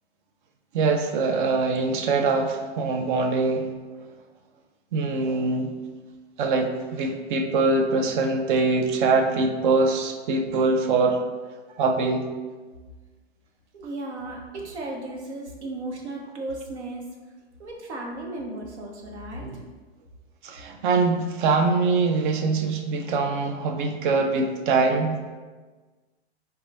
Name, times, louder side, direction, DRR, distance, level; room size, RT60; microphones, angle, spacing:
voice 1, 0.7-3.7 4.9-5.7 6.4-11.2 11.8-12.3 19.4-19.6 20.4-25.1, right 3 dB, 50° right, 5 dB, 0.5 m, -23 dB
voice 2, 13.7-17.0 17.6-19.5, right 2 dB, 85° right, -1 dB, 0.9 m, -35 dB
3.8 x 2.3 x 3.2 m, 1.3 s
hypercardioid pair, 125°, 33 cm